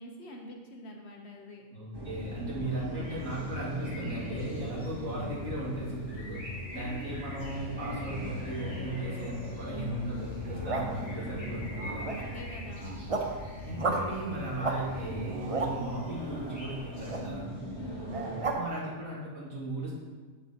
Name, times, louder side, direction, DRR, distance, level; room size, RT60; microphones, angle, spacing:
voice 1, 0.0-1.6 6.7-7.3 12.2-13.0 17.8-18.3, left 1 dB, 55° left, 1 dB, 1.1 m, -45 dB
voice 2, 1.7-6.4 6.7-12.1 13.2-13.4 13.6-17.5 18.6-20.0, right 1 dB, 80° right, -6 dB, 2.3 m, -37 dB
sound 1, 1.9-18.5, equal, 20° right, 1.0 m, -39 dB
sound 2, 3.0-17.2, equal, 35° left, 2.5 m, -48 dB
sound 3, 10.4-11.0 11.7-12.4 12.8-13.3 13.8-14.1 14.6-14.8 15.2-15.7 17.1-17.2 18.1-18.6, right 3 dB, 40° right, 0.5 m, -33 dB
7.4 x 7.0 x 2.8 m, 1.5 s
omnidirectional pair, 1.4 m